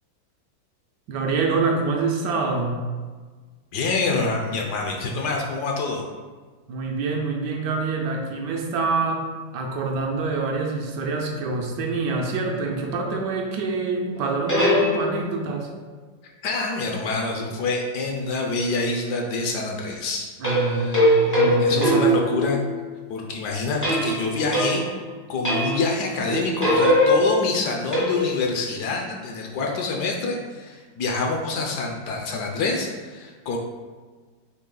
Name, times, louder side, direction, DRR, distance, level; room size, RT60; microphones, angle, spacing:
voice 1, 1.1-2.8 6.7-15.7 20.4-22.2, right 4 dB, 75° right, 1 dB, 1.1 m, -26 dB
voice 2, 3.7-6.1 16.4-22.6 23.1-24.9 25.3-33.6, left 3 dB, 70° left, 0 dB, 1.1 m, -26 dB
sound 1, 14.1-15.5 20.4-22.9 23.8-25.1 25.4-26.0 26.3-28.5, equal, 20° left, 0.4 m, -22 dB
4.3 x 3.1 x 3.7 m, 1.4 s
omnidirectional pair, 2.0 m